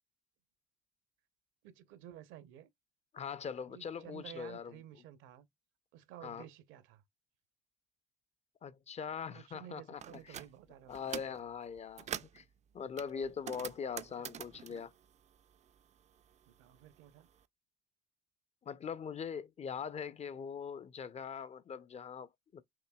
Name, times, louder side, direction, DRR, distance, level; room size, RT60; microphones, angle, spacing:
voice 1, 1.6-2.7 3.7-5.5 5.9-7.0 9.3-11.4 16.5-17.3, right 11 dB, 70° right, 0.8 m, -53 dB
voice 2, 3.1-4.7 6.2-6.4 8.6-10.4 10.9-12.4 12.7-14.9 18.6-22.6, left 6 dB, 30° left, 0.5 m, -42 dB
sound 1, 10.0-10.5 10.9-11.4 11.8-12.4 13.0-15.9 16.2-17.3, right 9 dB, 35° right, 0.4 m, -45 dB
5.9 x 2.7 x 2.2 m
hypercardioid pair, 70°, 21 cm